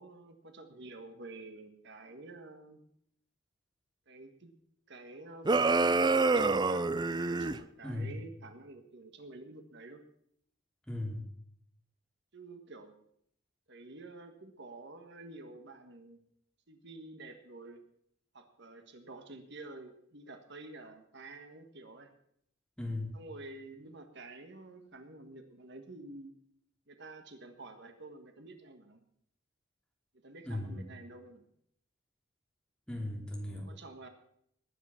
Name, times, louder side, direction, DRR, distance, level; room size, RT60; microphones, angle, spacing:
voice 1, 0.0-2.8 4.1-4.5 4.9-10.0 12.3-13.0 13.7-16.2 16.7-17.8 18.3-22.1 23.1-26.3 26.9-29.0 30.1-31.4 33.5-34.1, right 2 dB, 60° right, 7 dB, 1.7 m, -49 dB
sound 1, 5.4-7.6, right 3 dB, 20° right, 0.5 m, -27 dB
voice 2, 7.8-8.2 10.9-11.2 22.8-23.2 30.5-30.9 32.9-33.7, left 1 dB, 5° left, 1 dB, 3.0 m, -37 dB
19.5 x 9.4 x 5.9 m, 0.69 s
head